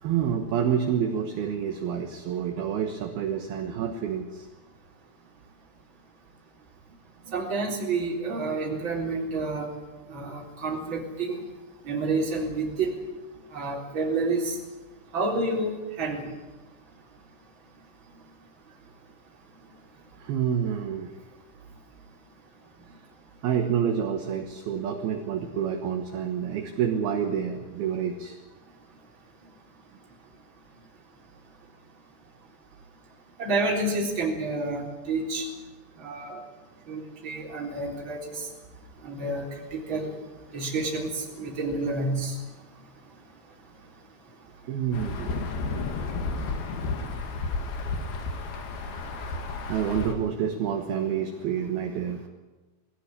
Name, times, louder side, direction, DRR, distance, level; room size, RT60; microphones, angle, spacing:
voice 1, 0.0-4.5 7.3-7.4 20.2-21.1 23.4-28.4 44.7-45.3 49.7-52.3, right 8 dB, 65° right, 4 dB, 2.6 m, -28 dB
voice 2, 7.3-9.7 10.1-11.4 11.8-13.0 13.5-14.6 15.1-16.3 33.4-35.5 36.0-36.4 36.9-38.5 39.0-39.4 39.7-40.1 40.5-42.4, right 3 dB, 25° right, -1 dB, 3.9 m, -29 dB
Insect / Thunder / Rain, 44.9-50.1, left 3 dB, 60° left, 3.4 m, -32 dB
21.5 x 16.5 x 9.9 m, 1.2 s
omnidirectional pair, 5.9 m